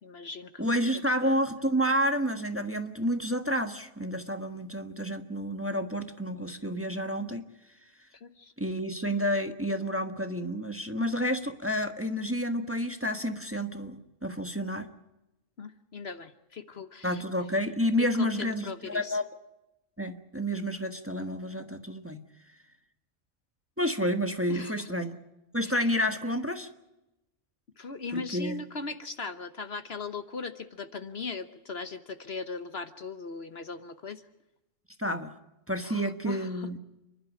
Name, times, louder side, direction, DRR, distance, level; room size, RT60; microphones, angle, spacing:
voice 1, 0.0-0.8 1.2-1.3 8.2-8.5 15.6-17.2 18.0-19.2 24.5-25.0 25.6-25.7 27.8-34.2 35.8-36.8, left 4 dB, 55° left, 10 dB, 1.3 m, -39 dB
voice 2, 0.6-7.4 8.6-14.9 17.0-19.3 20.0-22.2 23.8-25.2 25.5-26.7 28.1-28.6 35.0-35.3 35.7-36.8, equal, 10° right, 6 dB, 1.3 m, -30 dB
29.5 x 12.0 x 9.9 m, 0.94 s
omnidirectional pair, 1.3 m